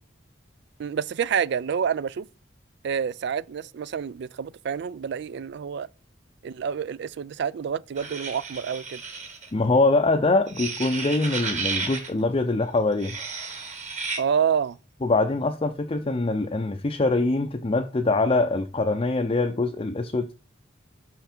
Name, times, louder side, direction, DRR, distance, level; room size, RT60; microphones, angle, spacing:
voice 1, 0.8-2.3 2.8-5.9 6.4-9.0 14.2-14.8, right 7 dB, 60° right, 0.3 m, -28 dB
sound 1, 8.0-9.5 10.5-12.1 12.9-14.2, right 4 dB, 40° right, 1.7 m, -33 dB
voice 2, 9.5-13.2 15.0-20.3, left 2 dB, 30° left, 0.5 m, -23 dB
5.9 x 5.7 x 4.3 m
head